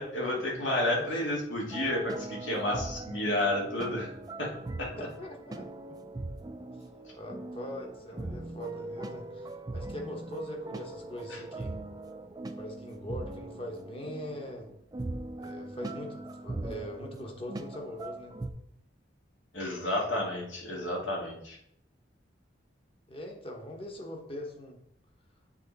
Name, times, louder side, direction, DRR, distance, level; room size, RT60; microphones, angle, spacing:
voice 1, 0.0-4.1 4.4-4.5 4.8-4.9 11.3-11.4 19.5-21.6, left 1 dB, 80° left, -3 dB, 2.2 m, -31 dB
voice 2, 1.0-1.3 5.0-5.7 7.1-11.8 12.6-14.7 15.4-18.3 23.1-24.8, left 1 dB, 30° left, 1 dB, 1.2 m, -42 dB
sound 1, 1.7-18.5, right 2 dB, 20° right, 0.4 m, -41 dB
8.4 x 4.0 x 4.1 m, 0.74 s
head